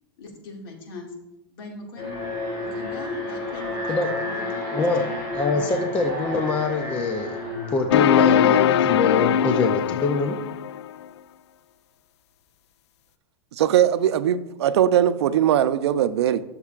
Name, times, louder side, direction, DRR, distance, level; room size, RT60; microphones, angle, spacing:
voice 1, 0.2-1.1 1.5-2.3 2.6-5.2 5.5-5.9, left 2 dB, 60° left, 2.0 m, -41 dB
Alarm, 2.0-9.1, left 2 dB, 35° left, 2.9 m, -31 dB
voice 2, 4.7-5.1 5.3-7.4 7.7-10.3, left 3 dB, 10° left, 0.3 m, -24 dB
sound 1, 7.9-10.9, left 10 dB, 90° left, 0.4 m, -20 dB
voice 3, 13.5-16.4, right 10 dB, 90° right, 0.5 m, -20 dB
12.5 x 6.7 x 2.4 m
supercardioid pair, 175°, 14 cm